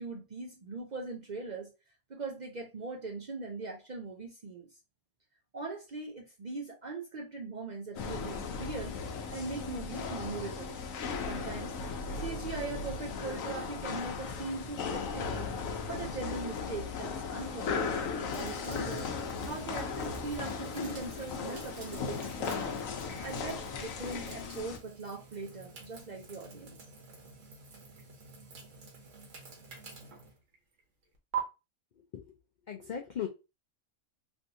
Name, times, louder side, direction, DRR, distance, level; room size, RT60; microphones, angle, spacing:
voice 1, 0.0-1.7 2.1-4.7 5.5-9.0 9.3-10.8 11.3-11.8 12.2-15.5 15.9-19.1 19.4-22.7 23.2-26.8, right 3 dB, 50° right, 0.5 m, -40 dB
sound 1, 8.0-24.8, left 5 dB, 85° left, 1.0 m, -37 dB
sound 2, 18.3-31.4, right 7 dB, 75° right, 1.3 m, -47 dB
voice 2, 32.7-33.3, left 9 dB, 65° left, 0.4 m, -37 dB
3.3 x 2.7 x 2.5 m
omnidirectional pair, 1.3 m